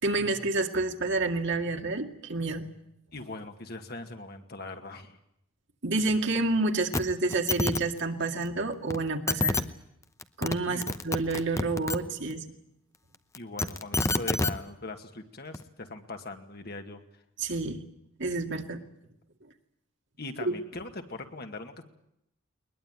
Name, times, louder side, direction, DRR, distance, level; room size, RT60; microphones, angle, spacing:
voice 1, 0.0-2.7 5.8-9.6 10.4-12.4 17.4-17.8 18.2-18.8 20.4-20.5, right 3 dB, 60° right, 4 dB, 2.3 m, -29 dB
voice 2, 3.1-5.2 10.7-11.0 13.3-17.0 20.2-21.8, left 2 dB, 50° left, 5 dB, 2.2 m, -40 dB
sound 1, 6.9-7.0 7.3-7.8 8.9-9.0 9.3-9.6 10.2-10.6 10.8-12.0 13.3-14.5 15.5-15.6, left 2 dB, 15° left, 0.9 m, -27 dB
21.0 x 21.0 x 9.2 m, 0.77 s
head